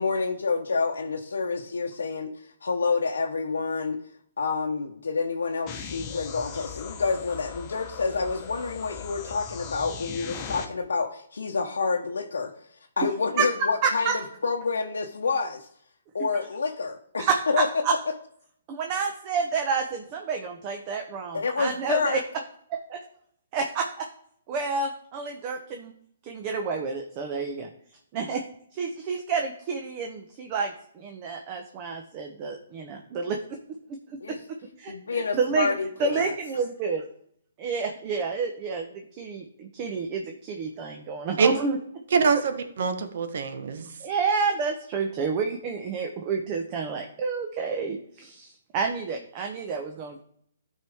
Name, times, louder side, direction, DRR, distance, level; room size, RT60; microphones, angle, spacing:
voice 1, 0.0-2.3 2.6-4.0 4.4-12.5 13.0-14.1 14.4-15.7 16.1-17.3 17.5-17.7 21.3-22.2 34.2-34.4 34.9-36.3, left 4 dB, 85° left, 1 dB, 0.8 m, -28 dB
sound 1, 5.7-10.7, left 6 dB, 25° left, 1.1 m, -39 dB
voice 2, 13.8-14.2 17.2-18.0 18.7-22.2 22.7-23.0 23.5-24.1 24.5-25.9 26.2-27.7 28.1-28.4 28.7-33.4 33.9-34.4 34.8-35.7 36.0-37.0 37.6-41.8 44.0-50.2, right 5 dB, 30° right, 4 dB, 0.9 m, -29 dB
voice 3, 42.1-43.9, right 5 dB, 60° right, 8 dB, 1.1 m, -24 dB
12.5 x 4.7 x 3.5 m, 0.65 s
hypercardioid pair, 145°, 0 cm